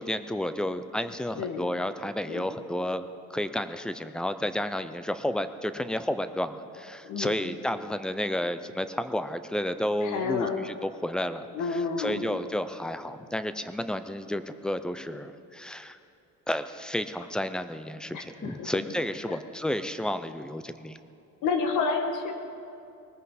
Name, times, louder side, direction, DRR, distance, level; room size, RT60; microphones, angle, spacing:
voice 1, 0.0-3.0 3.3-11.5 12.0-16.0 16.5-21.0, left 1 dB, 5° left, 11 dB, 0.3 m, -31 dB
voice 2, 1.4-1.7 2.3-2.5 7.0-7.5 10.0-10.6 11.5-12.3 18.1-18.8 19.3-19.4 21.4-22.4, left 5 dB, 75° left, 5 dB, 1.8 m, -30 dB
20.5 x 14.5 x 4.1 m, 2.6 s
cardioid pair, 175°, 31 cm